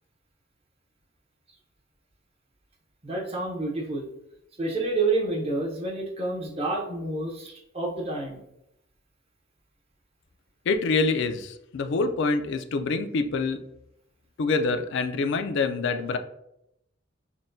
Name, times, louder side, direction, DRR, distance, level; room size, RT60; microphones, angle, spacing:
voice 1, 3.0-4.1 4.6-8.4, right 2 dB, 30° right, 0 dB, 0.8 m, -29 dB
voice 2, 10.7-13.6 14.4-16.2, left 3 dB, 65° left, 8 dB, 0.4 m, -26 dB
6.0 x 2.2 x 2.6 m, 0.82 s
head